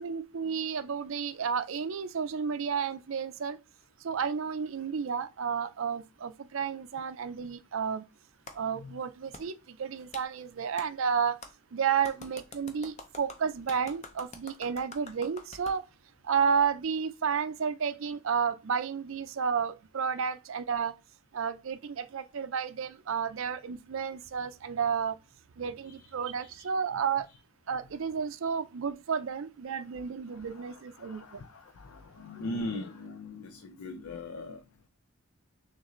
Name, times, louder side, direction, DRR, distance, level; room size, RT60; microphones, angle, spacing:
voice 1, 0.0-3.6 4.0-8.1 8.5-11.4 11.7-15.8 16.2-20.9 21.3-25.2 25.6-27.3 27.7-31.4, right 6 dB, 65° right, 0.5 m, -31 dB
Clapping, 8.5-8.6 9.3-9.4 10.1-10.3 10.8-10.9 11.4-11.5 12.0-15.8, left 3 dB, 30° left, 0.6 m, -46 dB
voice 2, 25.8-27.0 30.3-34.6, left 2 dB, 90° left, 0.5 m, -41 dB
6.3 x 2.5 x 3.1 m
head